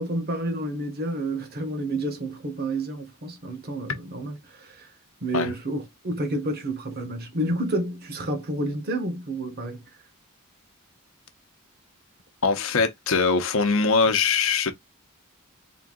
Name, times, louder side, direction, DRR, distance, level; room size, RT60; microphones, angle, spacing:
voice 1, 0.0-4.9 5.2-9.8, right 1 dB, 45° right, 1.1 m, -30 dB
voice 2, 12.4-14.7, left 4 dB, 65° left, 0.8 m, -22 dB
3.8 x 2.7 x 3.7 m
head